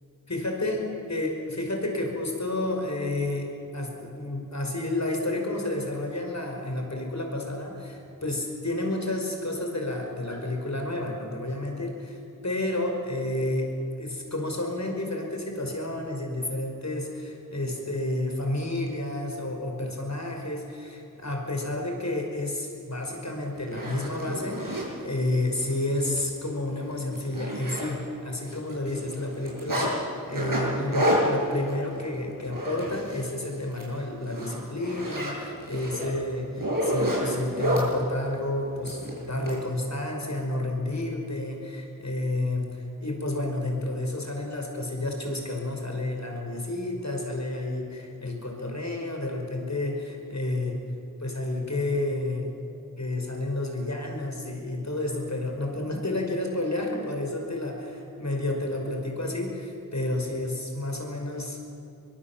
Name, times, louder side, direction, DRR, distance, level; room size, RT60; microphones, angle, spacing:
voice 1, 0.3-0.8 1.1-12.2 12.4-13.7 14.0-50.8 51.2-52.5 53.0-61.6, left 1 dB, 55° left, 2 dB, 5.4 m, -30 dB
Zipper (clothing), 23.0-23.1 23.6-24.9 25.5-25.6 26.0-26.1 26.4-26.6 26.9-28.2 28.5-29.9 30.3-33.3 33.6-33.9 34.2-37.9 38.8-39.6, equal, 75° right, 6.8 m, -29 dB
23.0 x 22.5 x 7.4 m, 2.8 s
wide cardioid pair, 40°, 33 cm